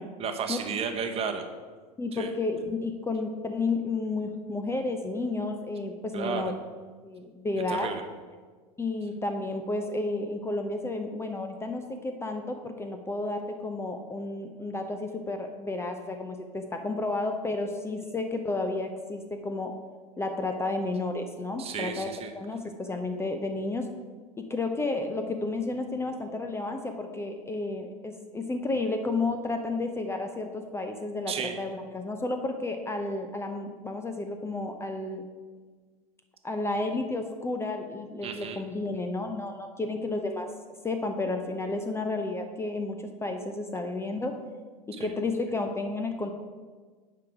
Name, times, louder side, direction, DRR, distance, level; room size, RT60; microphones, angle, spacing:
voice 1, 0.2-1.4 2.1-2.3 6.1-6.4 7.7-8.0 21.6-22.3 31.3-31.5 38.2-38.6 44.9-45.1, right 6 dB, 30° right, 5 dB, 1.0 m, -33 dB
voice 2, 2.0-6.5 7.0-7.9 8.8-19.7 20.2-22.1 22.3-23.8 24.4-35.3 36.4-40.5 40.8-44.3 45.0-46.3, left 2 dB, 15° left, 5 dB, 0.7 m, -32 dB
9.3 x 5.0 x 4.8 m, 1.5 s
hypercardioid pair, 90°, 20 cm